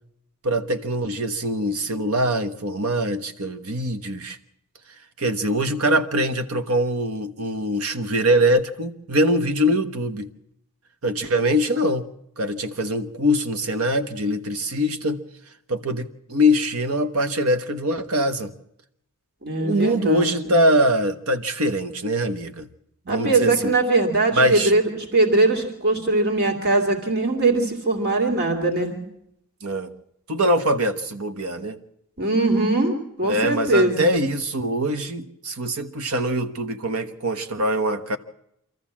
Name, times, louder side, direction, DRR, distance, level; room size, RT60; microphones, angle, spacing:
voice 1, 0.4-4.4 5.2-10.3 11.0-12.1 12.4-15.2 15.7-18.5 19.6-22.7 23.1-23.7 24.4-24.7 29.6-29.9 30.3-31.8 33.2-38.2, equal, 80° right, 10 dB, 1.2 m, -23 dB
voice 2, 19.4-20.5 23.1-29.0 32.2-34.1, right 2 dB, 45° right, 3 dB, 2.6 m, -21 dB
25.5 x 14.0 x 7.4 m, 0.79 s
head